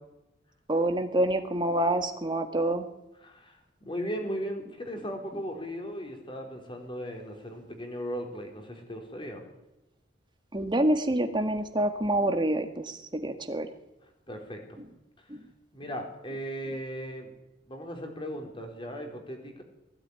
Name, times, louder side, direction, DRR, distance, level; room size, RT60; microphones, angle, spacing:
voice 1, 0.7-2.9 10.5-13.7 15.3-15.4, right 1 dB, 25° right, 6 dB, 1.9 m, -27 dB
voice 2, 3.2-9.4 14.3-14.8 15.2-15.3 15.7-17.3 17.7-19.6, equal, 25° left, 3 dB, 4.4 m, -37 dB
20.5 x 16.5 x 9.8 m, 0.93 s
head